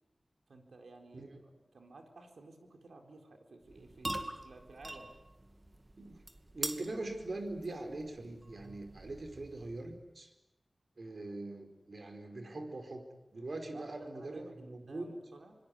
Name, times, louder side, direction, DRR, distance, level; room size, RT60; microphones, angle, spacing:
voice 1, 0.5-5.1 13.7-15.6, right 3 dB, 90° right, 3 dB, 4.2 m, -54 dB
sound 1, 3.6-10.0, right 1 dB, 35° right, 2.5 m, -45 dB
voice 2, 6.5-10.3 11.0-15.1, right 2 dB, 65° right, 6 dB, 4.6 m, -42 dB
26.0 x 20.5 x 9.8 m, 1.0 s
cardioid pair, 45°, 0 cm